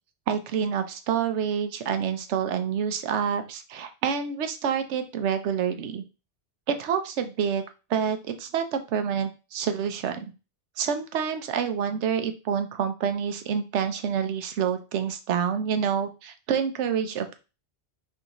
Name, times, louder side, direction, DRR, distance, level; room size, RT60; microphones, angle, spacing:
voice 1, 0.3-6.0 6.7-7.6 7.9-10.3 10.8-17.4, right 7 dB, 85° right, 8 dB, 1.0 m, -27 dB
6.1 x 2.7 x 2.9 m, 0.31 s
omnidirectional pair, 1.2 m